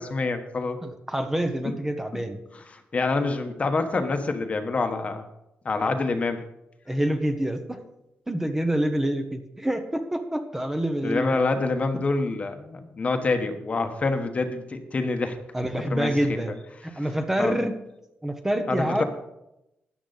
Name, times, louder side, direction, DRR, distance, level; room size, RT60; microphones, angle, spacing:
voice 1, 0.0-0.8 2.9-5.2 5.6-6.4 11.0-15.4 15.9-16.4 17.4-17.5 18.7-19.0, left 3 dB, 35° left, 7 dB, 1.2 m, -26 dB
voice 2, 0.8-2.4 6.9-7.8 8.3-11.4 15.5-16.5 16.8-17.8 18.2-19.0, right 1 dB, 10° right, 6 dB, 1.0 m, -27 dB
13.0 x 10.0 x 4.1 m, 0.86 s
wide cardioid pair, 135°, 4 cm